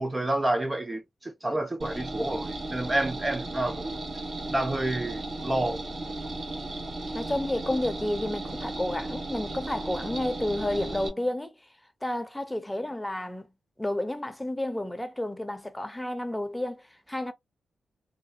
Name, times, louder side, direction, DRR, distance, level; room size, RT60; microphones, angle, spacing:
voice 1, 0.0-4.0 4.5-5.8, right 1 dB, 25° right, 0.4 m, -29 dB
sound 1, 1.8-11.1, right 2 dB, 55° right, 1.0 m, -35 dB
voice 2, 7.1-11.7 12.0-13.5 13.8-17.3, left 1 dB, 10° left, 0.7 m, -31 dB
2.5 x 2.2 x 2.7 m
supercardioid pair, 50°, 0 cm